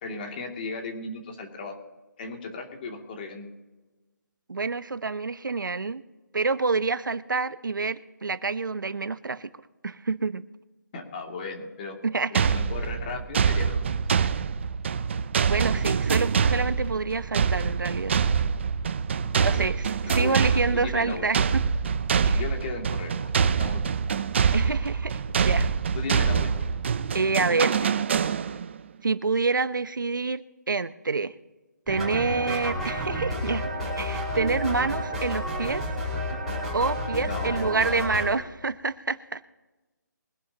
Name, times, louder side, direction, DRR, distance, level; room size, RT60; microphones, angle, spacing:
voice 1, 0.0-1.8 2.2-3.5 10.9-12.0 12.3-14.0 19.2-19.7 20.1-21.3 22.3-24.2 24.6-24.8 25.9-26.8 27.5-27.7 37.2-38.0, left 3 dB, 30° left, 2 dB, 2.5 m, -36 dB
voice 2, 4.5-6.0 6.3-9.5 9.8-10.4 12.0-12.3 15.5-18.2 19.4-21.4 22.2-22.4 24.5-25.1 25.4-25.7 27.1-27.7 29.0-31.3 31.9-33.6 34.0-35.9 36.7-39.4, right 4 dB, 85° right, 13 dB, 0.9 m, -27 dB
sound 1, 12.3-28.8, right 6 dB, 35° right, 0.6 m, -25 dB
sound 2, 31.9-38.3, equal, ahead, 4.9 m, -30 dB
23.5 x 11.0 x 2.9 m, 1.2 s
hypercardioid pair, 165°, 10 cm